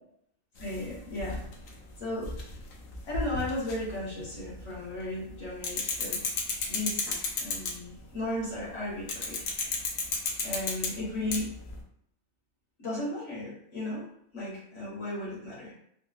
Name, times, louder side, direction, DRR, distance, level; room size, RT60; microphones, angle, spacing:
sound 1, 0.6-4.7 5.0-8.0 9.1-11.8, left 4 dB, 80° left, 1.0 m, -33 dB
voice 1, 0.6-1.4 2.0-2.3 3.1-6.2 6.7-9.4 10.4-11.5 12.8-14.1 14.3-15.7, left 1 dB, 60° left, -8 dB, 1.7 m, -35 dB
3.6 x 2.1 x 2.4 m, 0.72 s
omnidirectional pair, 1.4 m